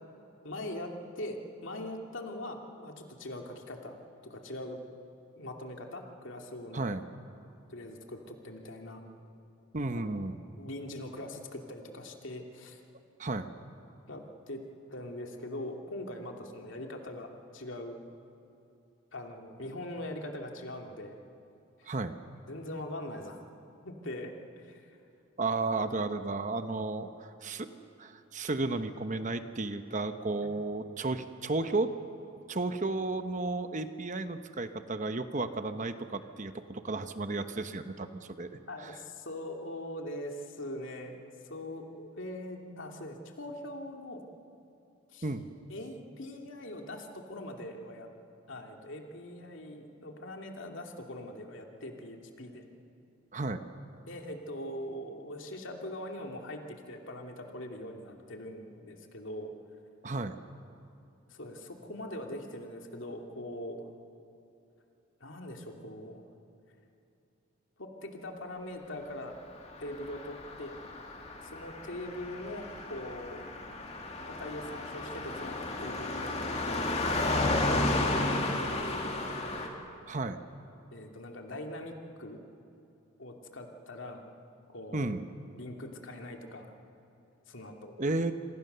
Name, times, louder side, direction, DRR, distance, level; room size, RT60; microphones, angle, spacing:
voice 1, 0.4-4.0 4.2-4.8 5.3-6.9 7.7-9.0 10.2-10.3 10.6-12.8 14.1-14.6 14.9-18.0 19.1-21.2 21.8-22.0 22.5-23.4 23.8-25.0 30.4-30.6 38.7-44.2 45.1-45.3 45.7-48.1 48.5-52.6 54.1-59.5 61.3-63.9 65.2-66.2 67.8-69.4 69.8-70.8 71.4-73.4 74.3-76.4 76.6-76.9 78.1-79.2 80.9-82.4 83.2-84.2 84.7-85.1 85.5-86.8 87.5-88.0, left 1 dB, 65° left, 2 dB, 2.6 m, -42 dB
voice 2, 9.7-10.4 13.2-13.5 21.9-22.1 25.4-27.7 28.0-31.9 32.5-38.5 38.8-38.9 45.2-45.5 53.3-53.6 60.0-60.3 80.1-80.4 84.9-85.2 88.0-88.3, right 3 dB, 35° right, 9 dB, 0.9 m, -33 dB
Car passing by, 69.7-79.7, left 2 dB, 30° left, 2.5 m, -33 dB
27.5 x 24.5 x 6.8 m, 2.8 s
head